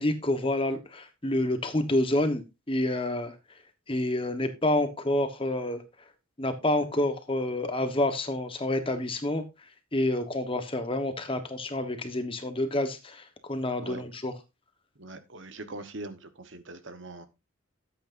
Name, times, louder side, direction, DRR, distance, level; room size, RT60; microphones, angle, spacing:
voice 1, 0.0-3.3 3.9-5.8 6.4-9.4 9.9-14.3, left 1 dB, 25° left, 1.2 m, -28 dB
voice 2, 15.0-17.3, right 2 dB, 60° right, 1.2 m, -42 dB
13.0 x 8.1 x 2.6 m
head